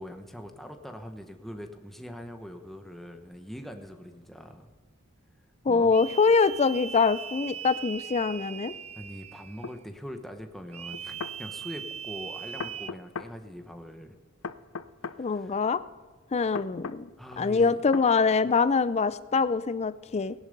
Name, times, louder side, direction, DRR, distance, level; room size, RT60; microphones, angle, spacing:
voice 1, 0.0-4.7 5.7-5.9 8.9-14.2 15.0-15.6 17.2-17.8, equal, ahead, 5 dB, 1.0 m, -42 dB
voice 2, 5.7-8.7 15.2-15.8 16.3-17.1 17.4-20.3, left 4 dB, 30° left, 15 dB, 0.4 m, -24 dB
sound 1, 5.9-9.8 10.7-12.9, right 8 dB, 30° right, 0.4 m, -40 dB
sound 2, 9.6-9.8 10.9-11.4 12.6-13.3 14.4-15.2 16.6-17.0 17.9-18.1, left 5 dB, 85° left, 0.6 m, -37 dB
18.0 x 10.5 x 5.3 m, 1.5 s
head